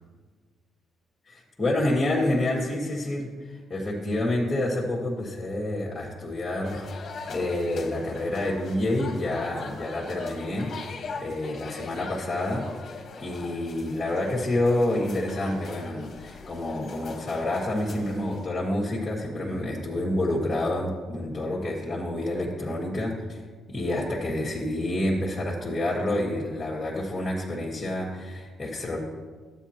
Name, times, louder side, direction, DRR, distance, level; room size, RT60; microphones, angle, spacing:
voice 1, 1.3-6.8 7.3-12.7 13.2-23.4 23.7-29.0, left 1 dB, 25° left, -6 dB, 1.7 m, -28 dB
sound 1, 6.6-18.5, left 4 dB, 55° left, 1.2 m, -41 dB
12.5 x 8.8 x 2.9 m, 1.4 s
cardioid pair, 90°, 0 cm